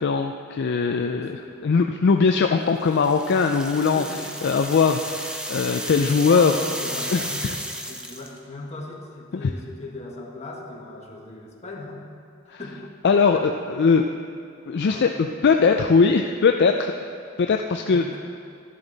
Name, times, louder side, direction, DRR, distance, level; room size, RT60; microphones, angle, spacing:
voice 1, 0.0-1.4 1.6-4.0 4.4-6.6 7.1-7.5 9.3-9.5 12.5-12.6 13.0-14.1 14.7-16.9 17.4-18.1, left 5 dB, 55° left, 5 dB, 0.4 m, -20 dB
voice 2, 0.9-1.6 3.8-4.3 5.9-7.6 7.9-12.0 12.4-12.8 13.3-13.9 14.8-15.3 17.9-18.2, left 2 dB, 35° left, -1 dB, 1.5 m, -37 dB
sound 1, 2.8-8.4, equal, 5° right, 0.7 m, -33 dB
12.5 x 10.5 x 4.0 m, 2.3 s
head